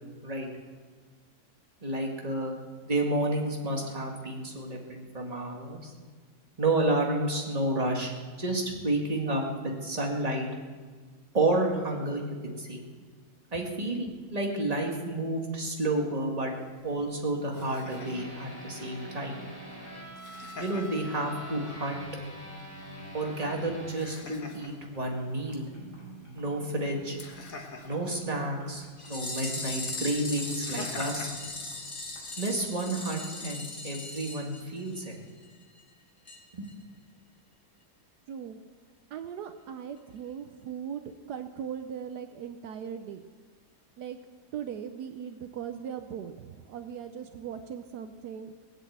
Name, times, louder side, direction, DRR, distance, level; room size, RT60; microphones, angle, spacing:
voice 1, 1.8-2.6 2.9-5.9 6.6-8.1 8.4-10.5 11.3-12.8 13.5-16.5 16.8-19.4 20.6-22.1 23.1-25.6 26.3-27.2 27.8-31.3 32.4-35.1 36.5-36.7, right 2 dB, 20° right, 0 dB, 2.0 m, -30 dB
Laughter, 16.5-32.5, left 3 dB, 55° left, 1.8 m, -48 dB
sound 1, 17.9-32.2 32.6-32.7, equal, 45° right, 6.1 m, -47 dB
sound 2, 29.0-35.2 35.4-35.5 35.8-35.9 36.3-36.4 36.7-36.8, left 2 dB, 30° left, 2.0 m, -38 dB
voice 2, 38.3-38.6 39.1-43.2 44.0-44.2 44.5-48.5, right 8 dB, 75° right, 8 dB, 1.3 m, -39 dB
19.5 x 8.3 x 8.1 m, 1.5 s
omnidirectional pair, 1.8 m